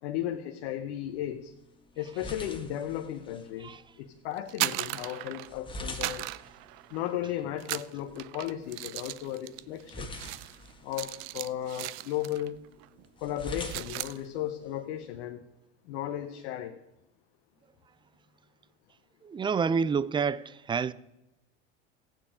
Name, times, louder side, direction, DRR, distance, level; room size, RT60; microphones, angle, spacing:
voice 1, 0.0-1.5 2.0-6.3 6.9-10.1 10.8-12.6 13.2-15.4 15.8-16.8, left 11 dB, 70° left, 1.1 m, -35 dB
sound 1, 1.1-15.1, left 1 dB, 15° left, 1.6 m, -47 dB
sound 2, 4.4-5.6 5.9-7.2 7.6-12.5 12.8-13.0 13.4-14.2, right 18 dB, 65° right, 0.6 m, -37 dB
voice 2, 19.2-20.9, right 6 dB, 15° right, 0.4 m, -28 dB
15.0 x 9.2 x 5.0 m
hypercardioid pair, 90°, 33 cm